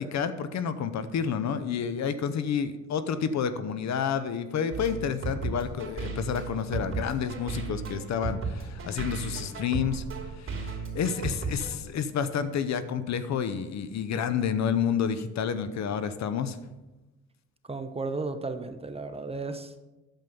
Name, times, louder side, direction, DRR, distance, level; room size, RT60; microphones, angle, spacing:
voice 1, 0.0-10.0 10.4-16.7, left 7 dB, 65° left, 12 dB, 0.8 m, -30 dB
sound 1, 4.7-11.7, right 4 dB, 45° right, 2.9 m, -35 dB
voice 2, 17.7-19.7, right 3 dB, 20° right, 8 dB, 0.9 m, -34 dB
9.1 x 7.3 x 5.4 m, 1.1 s
cardioid pair, 90°, 30 cm